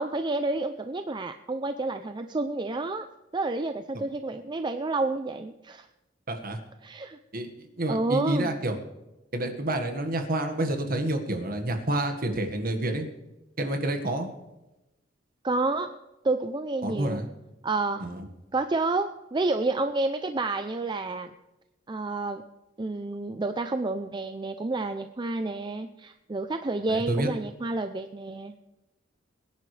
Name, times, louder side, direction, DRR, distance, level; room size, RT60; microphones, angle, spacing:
voice 1, 0.0-3.1 3.3-5.9 6.8-7.2 7.9-8.5 15.4-15.9 16.2-17.2 17.6-18.1 18.5-21.3 21.9-22.4 22.8-28.7, right 2 dB, 25° right, 8 dB, 0.5 m, -29 dB
voice 2, 6.3-6.6 7.3-7.5 7.8-8.8 9.3-13.1 13.6-14.3 16.8-17.2 18.0-18.2 26.9-27.3, right 1 dB, 50° right, 5 dB, 1.7 m, -28 dB
23.0 x 10.5 x 3.3 m, 1.0 s
head